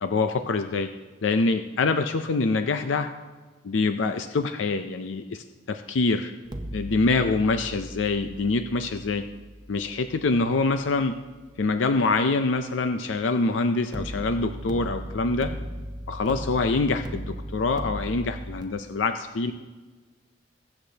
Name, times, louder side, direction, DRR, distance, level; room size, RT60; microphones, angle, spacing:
voice 1, 0.0-0.9 1.2-3.1 3.6-6.3 6.7-9.2 9.7-11.1 11.6-15.5 16.1-19.5, left 3 dB, 85° left, 8 dB, 0.5 m, -25 dB
sound 1, 6.5-11.5 13.9-18.6, equal, 20° right, 0.6 m, -38 dB
20.5 x 8.0 x 2.8 m, 1.3 s
head